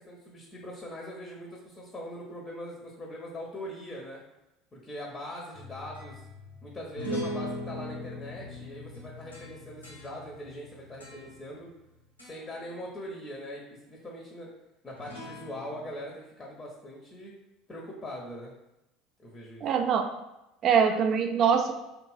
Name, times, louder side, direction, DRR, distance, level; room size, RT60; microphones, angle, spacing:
voice 1, 0.1-4.2 4.7-6.2 6.6-11.7 12.3-14.5 14.8-17.3 17.7-18.5 19.2-19.6, equal, 20° left, -2 dB, 0.7 m, -41 dB
sound 1, 5.5-11.9 12.2-12.6 15.0-15.9, left 1 dB, 90° left, 0.7 m, -40 dB
voice 2, 19.6-20.1 20.6-21.7, right 7 dB, 45° right, 5 dB, 0.4 m, -23 dB
2.7 x 2.5 x 3.2 m, 0.92 s
figure-of-eight pair, 65°, 0 cm